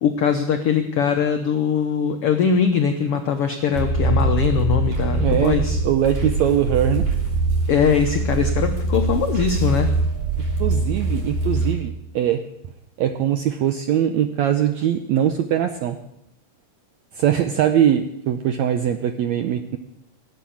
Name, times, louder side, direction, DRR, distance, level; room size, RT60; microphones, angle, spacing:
voice 1, 0.0-5.8 7.7-9.9, left 7 dB, 80° left, 5 dB, 1.3 m, -21 dB
sound 1, 3.7-11.8, right 3 dB, 55° right, 4.3 m, -23 dB
voice 2, 5.2-7.0 10.6-12.4 13.0-16.0 17.1-19.8, right 10 dB, 80° right, 8 dB, 1.6 m, -21 dB
18.5 x 8.3 x 8.5 m, 0.81 s
omnidirectional pair, 4.0 m